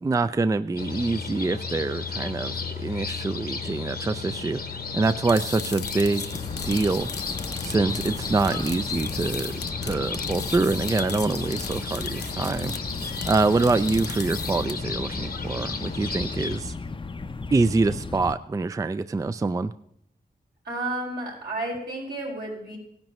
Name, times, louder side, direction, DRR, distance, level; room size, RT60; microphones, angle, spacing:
voice 1, 0.0-4.6 4.9-7.1 7.6-12.7 13.2-16.7 17.5-19.7, right 3 dB, 20° right, 13 dB, 0.3 m, -25 dB
sound 1, 0.8-16.6, left 4 dB, 65° left, 1.0 m, -34 dB
sound 2, 5.0-15.0, left 6 dB, 85° left, 0.7 m, -39 dB
sound 3, 6.3-18.4, left 3 dB, 30° left, 0.5 m, -36 dB
voice 2, 20.6-22.8, right 2 dB, 80° right, -4 dB, 5.0 m, -31 dB
17.5 x 10.5 x 3.1 m, 0.71 s
wide cardioid pair, 75°, 17 cm